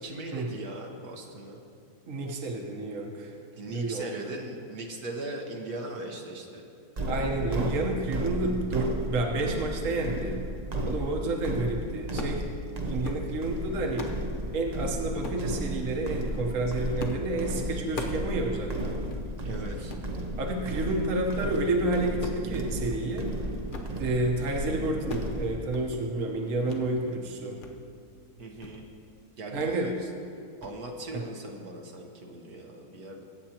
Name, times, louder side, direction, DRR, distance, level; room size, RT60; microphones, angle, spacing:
voice 1, 0.0-1.6 3.5-6.6 19.4-19.9 28.4-28.8 29.4-30.1 30.6-33.2, right 2 dB, 75° right, 1 dB, 1.6 m, -39 dB
voice 2, 2.1-3.3 3.7-4.1 7.1-10.4 10.9-12.5 12.9-14.2 14.5-19.0 20.4-23.3 24.0-27.6 29.5-29.9 31.1-31.2, right 2 dB, 60° right, 1 dB, 1.5 m, -30 dB
sound 1, 7.0-25.5, right 1 dB, 35° right, 0.8 m, -34 dB
sound 2, 12.1-12.4 12.8-13.3 13.7-14.2 15.2-15.5 16.1-16.4 17.0-17.3 17.5-18.3 18.6-18.7 19.0-19.2 19.7-20.1 20.6-20.9 21.2-21.7 22.0-23.3 23.5-24.0 24.2-24.6 24.8-25.3 25.6-26.0 26.6-26.8 27.2-27.7 28.1-28.2 28.6-28.8 29.5-29.8 30.1-30.3 30.6-30.7, left 2 dB, 40° left, 0.9 m, -41 dB
22.0 x 9.2 x 2.9 m, 2.4 s
omnidirectional pair, 1.6 m